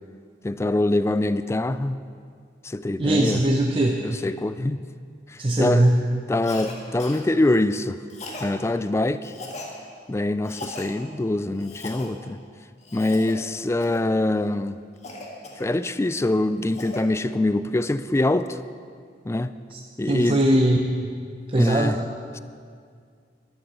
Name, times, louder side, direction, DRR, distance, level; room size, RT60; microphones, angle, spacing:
voice 1, 0.4-2.0 2.6-3.4 4.0-4.8 5.6-5.9 6.3-8.0 8.4-9.3 10.1-12.4 12.9-14.8 15.6-18.6 19.3-19.5 20.0-20.4 21.6-22.0 22.3-22.4, left 2 dB, 15° left, 14 dB, 0.3 m, -24 dB
voice 2, 3.0-4.0 5.4-6.0 19.7-19.8 20.1-20.8 21.5-22.0, right 1 dB, 30° right, 1 dB, 0.7 m, -20 dB
Cough, 6.4-6.7 7.0-7.2 8.1-8.5 9.2-9.7 10.4-10.9 11.6-12.1 12.8-13.3 13.8-14.1 15.0-16.0 16.4-17.0, left 2 dB, 40° left, 1.7 m, -38 dB
13.0 x 12.0 x 5.5 m, 2.1 s
head